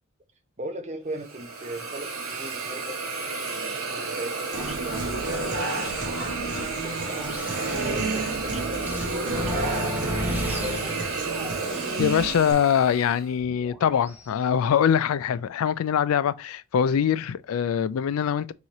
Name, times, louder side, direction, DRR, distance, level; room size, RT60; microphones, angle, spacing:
voice 1, 0.6-11.4, right 1 dB, 30° right, 0.7 m, -39 dB
Hiss, 1.2-13.3, right 4 dB, 70° right, 1.7 m, -32 dB
Human voice / Acoustic guitar, 4.5-12.5, right 2 dB, 55° right, 1.3 m, -33 dB
sound 1, 4.6-14.3, equal, 10° right, 0.9 m, -35 dB
voice 2, 12.0-18.5, left 8 dB, 75° left, 0.3 m, -23 dB
3.7 x 3.1 x 4.1 m
head